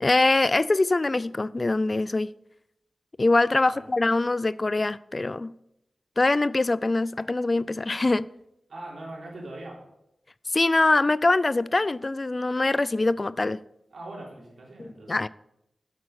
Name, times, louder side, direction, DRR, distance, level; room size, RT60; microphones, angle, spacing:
voice 1, 0.0-2.3 3.2-5.5 6.2-8.3 10.5-13.6 14.8-15.3, left 2 dB, 40° left, 0.3 m, -23 dB
voice 2, 8.7-9.8 13.9-15.2, right 2 dB, 85° right, 3.4 m, -41 dB
8.5 x 8.4 x 6.4 m
cardioid pair, 55°, 0 cm